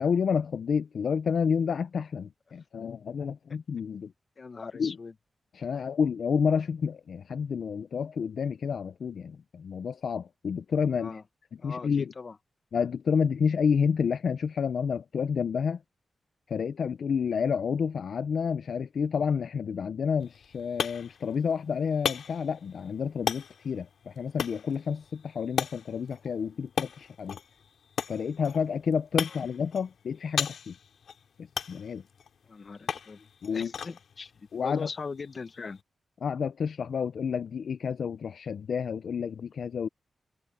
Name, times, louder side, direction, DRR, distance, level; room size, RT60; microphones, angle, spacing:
voice 1, 0.0-4.1 4.8-5.0 5.5-11.2 11.6-12.1 12.7-15.8 16.5-27.4 28.1-30.7 31.4-32.0 33.4-33.7 34.5-34.9 36.2-39.9, left 6 dB, 65° left, 0.4 m, -29 dB
voice 2, 4.4-5.1 5.7-5.8 11.0-11.2 11.6-12.4 29.3-29.4 32.4-35.8, left 4 dB, 40° left, 1.1 m, -40 dB
sound 1, 20.2-35.8, left 7 dB, 85° left, 2.7 m, -38 dB
wide cardioid pair, 165°, 0 cm